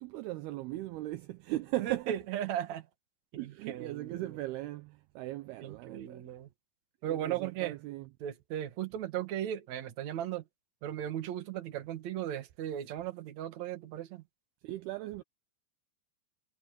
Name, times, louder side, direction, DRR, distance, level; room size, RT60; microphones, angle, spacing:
voice 1, 0.0-2.2 3.4-6.2 7.0-8.1 14.6-15.2, right 17 dB, 80° right, 2.3 m, -38 dB
voice 2, 1.8-2.8 3.3-4.2 5.6-6.5 7.0-7.8 8.2-10.4 10.8-14.2, right 11 dB, 55° right, 2.3 m, -37 dB
omnidirectional pair, 5.4 m